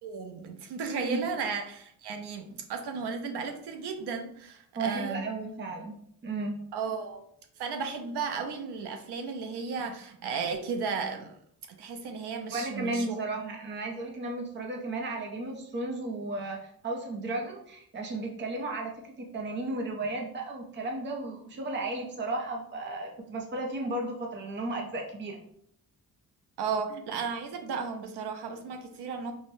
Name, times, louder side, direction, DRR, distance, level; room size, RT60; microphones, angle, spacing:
voice 1, 0.0-5.3 6.7-7.2 7.6-11.3 11.8-13.2 26.6-29.3, right 5 dB, 80° right, 5 dB, 0.6 m, -34 dB
voice 2, 0.9-1.2 4.7-6.0 6.2-6.6 12.5-16.6 16.8-25.4, right 2 dB, 30° right, 0 dB, 0.5 m, -34 dB
5.5 x 2.1 x 2.6 m, 0.68 s
wide cardioid pair, 180°, 39 cm